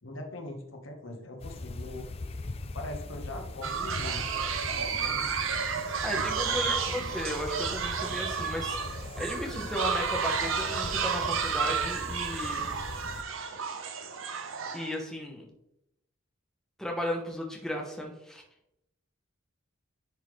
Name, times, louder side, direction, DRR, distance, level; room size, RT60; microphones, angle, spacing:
voice 1, 0.0-2.1 2.7-5.5 6.5-7.0, left 1 dB, 65° left, 3 dB, 1.2 m, -42 dB
sound 1, 1.4-13.2, left 2 dB, 30° left, 0.4 m, -40 dB
sound 2, 3.6-14.9, right 6 dB, 70° right, 0.8 m, -31 dB
voice 2, 6.0-12.7 14.7-15.4 16.8-18.4, equal, ahead, 0 dB, 0.9 m, -35 dB
10.5 x 3.7 x 3.3 m, 0.80 s
head